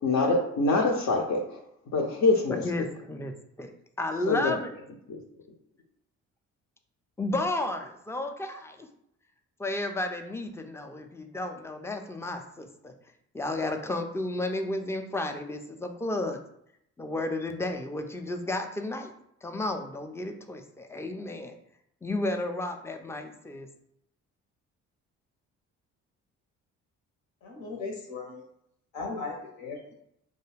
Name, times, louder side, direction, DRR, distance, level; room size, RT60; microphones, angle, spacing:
voice 1, 0.0-1.6 1.9-2.9 4.3-4.6 5.1-5.2, left 3 dB, 60° left, 0 dB, 0.6 m, -25 dB
voice 2, 2.5-4.7 7.2-8.9 9.6-12.9 13.3-16.4 17.0-19.1 19.4-21.6 22.0-23.7, left 2 dB, 10° left, 5 dB, 0.4 m, -32 dB
voice 3, 27.4-28.4 28.9-29.9, left 3 dB, 80° left, 0 dB, 0.9 m, -37 dB
2.3 x 2.3 x 3.2 m, 0.75 s
supercardioid pair, 60°, 33 cm